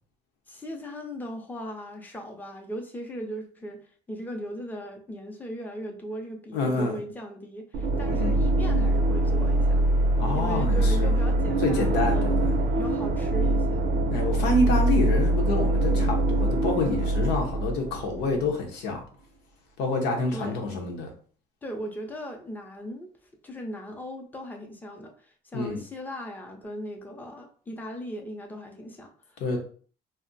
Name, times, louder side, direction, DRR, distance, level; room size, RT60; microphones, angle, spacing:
voice 1, 0.5-9.7 10.3-12.4 12.7-13.8 20.3-20.6 21.6-23.1 23.4-29.6, equal, 10° left, 0.6 m, -38 dB
voice 2, 6.5-7.0 8.1-8.4 10.2-11.2 11.6-12.5 14.1-19.0 19.8-21.1 25.5-25.8 29.4-29.6, left 2 dB, 90° left, 0.8 m, -27 dB
sound 1, 7.7-18.5, right 1 dB, 60° right, 0.5 m, -24 dB
2.4 x 2.1 x 3.9 m
cardioid pair, 110°, 17 cm